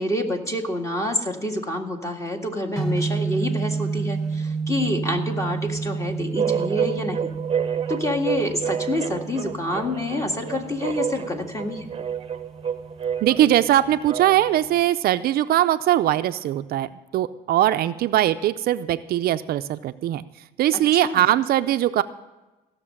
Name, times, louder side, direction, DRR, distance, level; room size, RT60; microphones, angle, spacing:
voice 1, 0.0-7.3 7.9-11.9 20.7-21.2, left 1 dB, 20° left, 3 dB, 1.9 m, -27 dB
sound 1, 2.8-14.8, right 4 dB, 5° left, 1.5 m, -31 dB
sound 2, 6.4-14.6, right 7 dB, 35° right, 0.8 m, -29 dB
voice 2, 13.2-20.2 20.6-22.0, right 13 dB, 65° right, 11 dB, 0.5 m, -21 dB
16.0 x 6.7 x 8.7 m, 1.1 s
cardioid pair, 110°, 17 cm